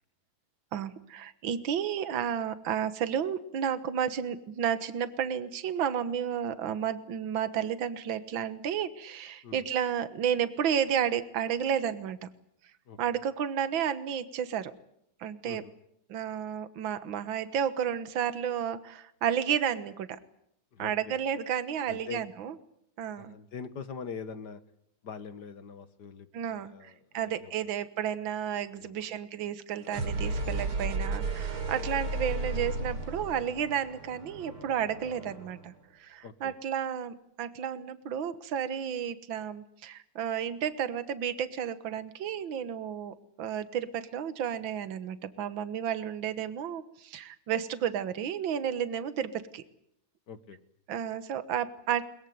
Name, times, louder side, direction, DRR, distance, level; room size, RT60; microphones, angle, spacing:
voice 1, 0.7-12.3 13.0-14.7 15.2-15.6 16.1-20.2 20.8-22.5 23.0-23.3 26.3-35.7 36.0-49.6 50.9-52.1, right 8 dB, 65° right, 13 dB, 2.0 m, -32 dB
voice 2, 12.9-13.2 15.4-15.7 20.7-21.2 21.9-22.3 23.2-24.6 25.0-27.5 28.7-29.2 31.7-31.9 36.2-36.6 50.3-50.6, left 5 dB, 55° left, 13 dB, 1.8 m, -43 dB
sound 1, 29.8-35.7, right 3 dB, 85° right, 5.3 m, -34 dB
22.0 x 21.5 x 9.4 m, 0.74 s
omnidirectional pair, 2.3 m